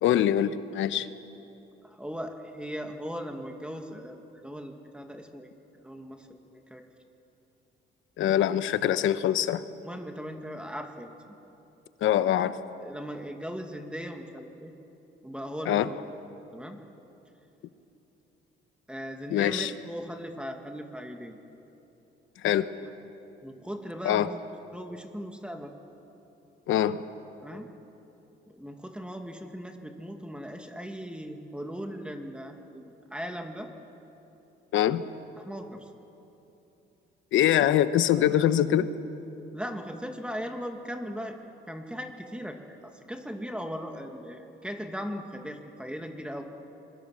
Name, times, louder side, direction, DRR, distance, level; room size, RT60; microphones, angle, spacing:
voice 1, 0.0-1.1 8.2-9.6 12.0-12.6 15.7-15.9 19.3-19.7 22.4-22.7 24.0-24.3 26.7-27.0 34.7-35.0 37.3-38.9, left 11 dB, 80° left, 13 dB, 1.0 m, -23 dB
voice 2, 1.8-5.5 5.8-6.9 9.8-11.3 12.8-14.7 15.2-16.2 16.5-16.8 18.9-21.4 22.8-22.9 23.4-24.4 24.7-25.7 27.4-27.7 28.5-33.7 35.4-35.9 39.5-41.4 41.7-46.4, equal, 5° right, 4 dB, 2.1 m, -38 dB
26.5 x 22.5 x 7.5 m, 3.0 s
cardioid pair, 90°, 20 cm